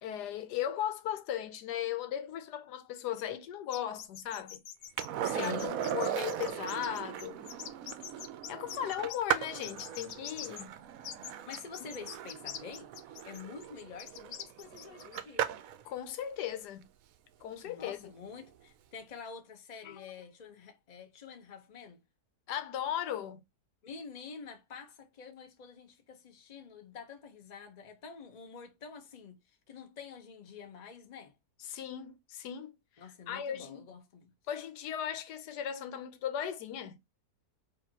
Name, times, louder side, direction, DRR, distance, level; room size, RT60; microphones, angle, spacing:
voice 1, 0.0-4.6 5.4-7.5 8.5-10.7 15.8-16.9 17.4-18.1 19.8-20.1 22.5-23.4 31.6-32.7 33.3-33.8 34.5-37.0, left 10 dB, 90° left, 1.3 m, -37 dB
sound 1, 3.7-9.2 9.6-10.6 11.0-15.2, left 10 dB, 70° left, 1.1 m, -44 dB
Skateboard, 5.0-15.8 18.4-18.5, right 10 dB, 70° right, 0.9 m, -38 dB
voice 2, 5.2-5.7 11.4-12.9 13.2-15.5 17.6-22.0 23.8-29.4 29.7-31.3 33.0-34.3, left 6 dB, 35° left, 0.8 m, -47 dB
5.2 x 2.6 x 2.8 m
omnidirectional pair, 1.7 m